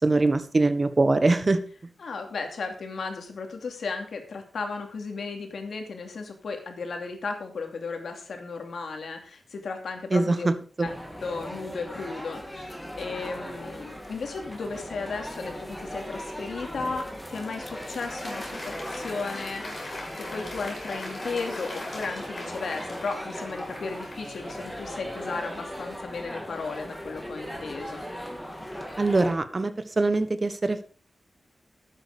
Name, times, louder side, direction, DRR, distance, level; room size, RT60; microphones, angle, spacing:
voice 1, 0.0-1.6 10.1-10.5 10.8-10.9 29.0-30.8, right 3 dB, 35° right, 11 dB, 1.2 m, -23 dB
voice 2, 2.0-10.5 10.8-10.9 11.2-28.1, left 4 dB, 85° left, 4 dB, 2.7 m, -35 dB
sound 1, 10.8-29.3, equal, 5° left, 2.4 m, -38 dB
Applause, 17.4-24.7, left 1 dB, 40° left, 6.3 m, -41 dB
12.0 x 8.9 x 5.0 m, 0.41 s
wide cardioid pair, 115°, 0 cm